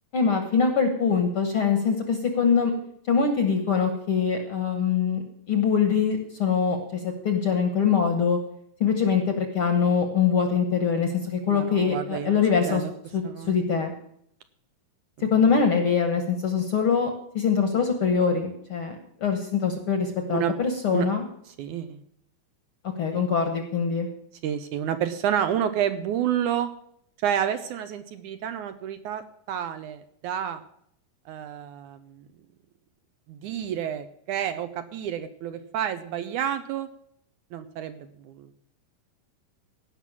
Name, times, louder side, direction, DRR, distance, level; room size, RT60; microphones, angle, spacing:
voice 1, 0.1-2.7 3.1-5.2 5.5-8.4 8.8-12.8 13.1-13.9 15.3-21.2 23.0-24.1, left 6 dB, 55° left, 6 dB, 1.6 m, -23 dB
voice 2, 11.5-12.4 12.7-12.9 13.2-13.5 15.2-15.3 20.3-20.5 20.9-21.1 21.6-22.0 23.1-23.3 24.4-26.7 27.2-29.2 29.5-30.6 31.3-32.3 33.3-36.9 37.5-38.5, right 9 dB, 75° right, 10 dB, 2.0 m, -29 dB
16.5 x 6.0 x 7.3 m, 0.70 s
omnidirectional pair, 3.9 m